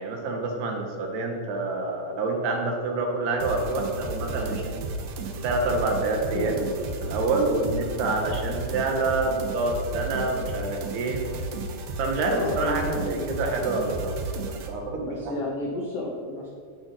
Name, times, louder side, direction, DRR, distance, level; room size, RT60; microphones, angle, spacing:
voice 1, 0.0-4.7 5.4-6.8 7.0-11.2 12.0-14.1 14.5-15.3, right 3 dB, 70° right, 2 dB, 3.4 m, -27 dB
sound 1, 3.4-14.7, right 2 dB, 90° right, 1.6 m, -34 dB
voice 2, 12.3-13.5 14.9-16.5, left 1 dB, 75° left, -2 dB, 1.4 m, -32 dB
18.5 x 6.2 x 5.8 m, 2.1 s
omnidirectional pair, 5.1 m